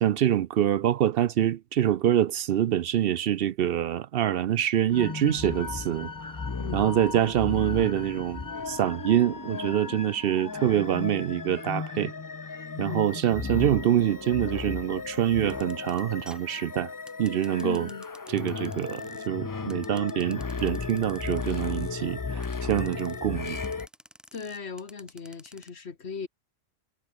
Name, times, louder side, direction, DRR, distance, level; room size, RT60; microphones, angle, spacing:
voice 1, 0.0-6.4 6.7-12.1 12.8-16.9 17.2-17.9 18.3-23.6, right 11 dB, 65° right, 0.7 m, -25 dB
sound 1, 4.9-23.9, left 4 dB, 30° left, 0.4 m, -35 dB
voice 2, 6.6-6.9 9.8-10.0 12.8-13.2 17.6-18.0 24.3-26.3, left 5 dB, 75° left, 1.9 m, -37 dB
sound 2, 15.4-19.3 19.7-21.9 22.4-23.2 23.5-25.7, equal, ahead, 5.2 m, -51 dB
omnidirectional pair, 1.1 m